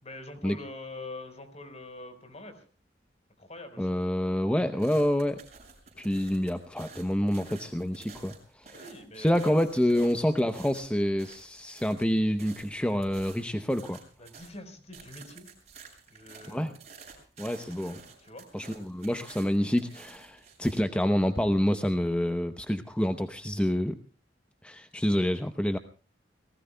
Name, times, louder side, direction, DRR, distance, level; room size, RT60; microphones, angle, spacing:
voice 1, 0.0-2.6 3.4-3.9 8.6-9.6 9.9-10.1 14.2-15.5 16.1-16.7 18.2-18.4, left 2 dB, 40° left, 8 dB, 4.3 m, -44 dB
voice 2, 3.8-5.4 6.0-8.7 9.2-14.0 16.5-16.7 17.4-18.0 18.5-24.0 24.6-25.8, equal, 5° left, 8 dB, 0.8 m, -27 dB
sound 1, 4.8-14.5 14.9-20.8, right 5 dB, 40° right, 7.5 m, -51 dB
30.0 x 19.5 x 2.2 m, 0.38 s
head